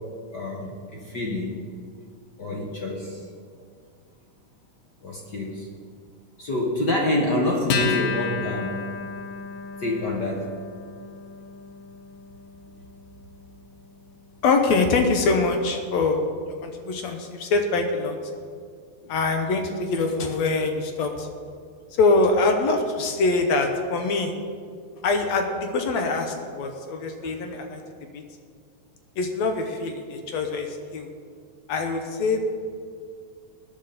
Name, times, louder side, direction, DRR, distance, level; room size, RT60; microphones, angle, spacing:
voice 1, 0.3-1.6 2.4-3.3 5.0-5.7 6.4-8.8 9.8-10.5, left 1 dB, 50° left, -1 dB, 1.4 m, -27 dB
Acoustic guitar, 7.7-14.5, left 4 dB, 85° left, 2.8 m, -32 dB
voice 2, 14.4-18.2 19.1-21.3 22.0-24.3 25.0-28.2 29.2-31.1 31.7-32.4, left 3 dB, 65° left, 4 dB, 2.1 m, -24 dB
20.5 x 9.8 x 4.2 m, 2.2 s
omnidirectional pair, 3.8 m